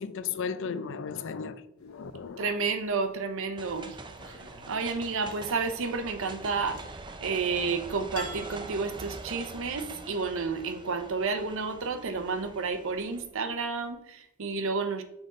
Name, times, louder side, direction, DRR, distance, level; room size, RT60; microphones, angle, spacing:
voice 1, 0.0-2.5, left 6 dB, 60° left, 0.5 m, -35 dB
sound 1, 1.8-13.9, left 1 dB, 80° left, 1.2 m, -53 dB
voice 2, 2.4-4.0 4.3-4.4 4.7-6.8 7.2-15.0, right 4 dB, 65° right, 0.7 m, -31 dB
sound 2, 3.6-13.2, right 3 dB, 20° right, 0.5 m, -44 dB
6.1 x 5.2 x 3.7 m
head